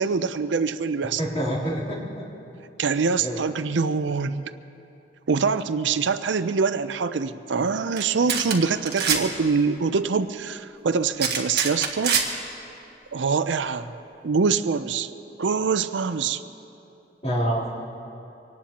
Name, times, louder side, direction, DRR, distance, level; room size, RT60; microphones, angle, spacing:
voice 1, 0.0-1.2 2.8-4.4 5.3-12.2 13.1-14.0 14.2-15.1 15.4-16.4, right 5 dB, 85° right, 12 dB, 0.5 m, -24 dB
voice 2, 1.2-2.2 3.2-3.4 17.2-17.7, right 1 dB, 35° left, -7 dB, 3.5 m, -26 dB
sound 1, 8.0-8.1 8.3-8.5 8.8-9.2 11.2-12.3, right 6 dB, 55° right, 1.6 m, -23 dB
24.5 x 18.5 x 3.0 m, 2.9 s
head